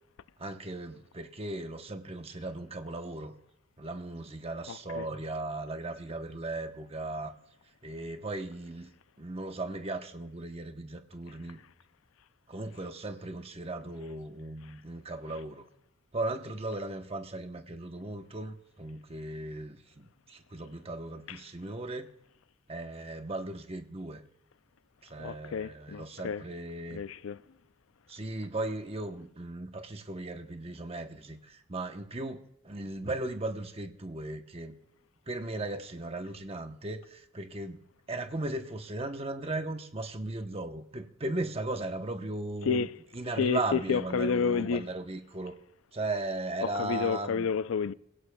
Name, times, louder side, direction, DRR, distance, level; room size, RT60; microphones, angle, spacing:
voice 1, 0.4-3.3 3.8-7.3 7.8-8.9 9.2-11.6 12.5-15.6 16.1-22.1 22.7-24.2 25.0-27.0 28.1-34.8 35.3-37.8 38.1-42.9 43.1-45.5 45.9-47.5, right 2 dB, 30° right, 0.9 m, -37 dB
voice 2, 4.7-5.1 25.2-26.4 26.9-27.4 42.7-42.9 43.4-44.8 46.6-47.9, left 5 dB, 75° left, 0.4 m, -30 dB
24.0 x 16.5 x 2.3 m
head